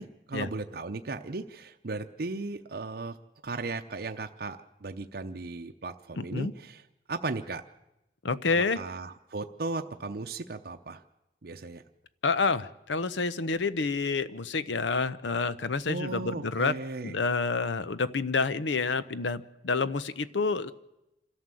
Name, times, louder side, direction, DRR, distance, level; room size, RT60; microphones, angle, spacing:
voice 1, 0.0-3.2 3.4-6.8 7.1-7.6 8.5-11.0 11.4-11.8 15.9-17.2, right 3 dB, 55° right, 5 dB, 0.7 m, -36 dB
voice 2, 6.2-6.5 8.2-8.8 12.2-16.7 17.0-20.7, left 4 dB, 85° left, 15 dB, 0.8 m, -28 dB
27.0 x 13.0 x 7.6 m, 0.92 s
head